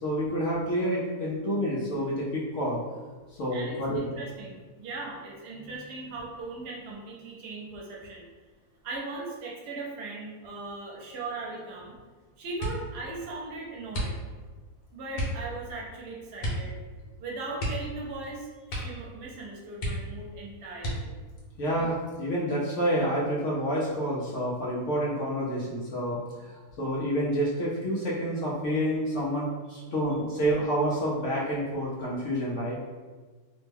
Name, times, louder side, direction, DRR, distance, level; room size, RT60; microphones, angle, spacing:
voice 1, 0.0-2.8 3.4-4.2 21.6-26.2 26.8-32.8, equal, 60° left, -6 dB, 0.8 m, -28 dB
voice 2, 3.5-8.3 8.8-12.0 12.4-14.2 14.9-16.7 17.2-21.1 29.7-29.8, right 3 dB, 75° right, -2 dB, 1.2 m, -39 dB
sound 1, 12.6-13.0 13.9-14.5 15.1-15.5 16.4-16.7 17.0-17.1 17.5-18.3 18.6-19.1 19.4-19.5 19.8-20.3 20.8-21.3 22.0-22.7 23.0-23.4, equal, 80° left, 1.4 m, -33 dB
3.1 x 2.1 x 3.3 m, 1.4 s
omnidirectional pair, 1.8 m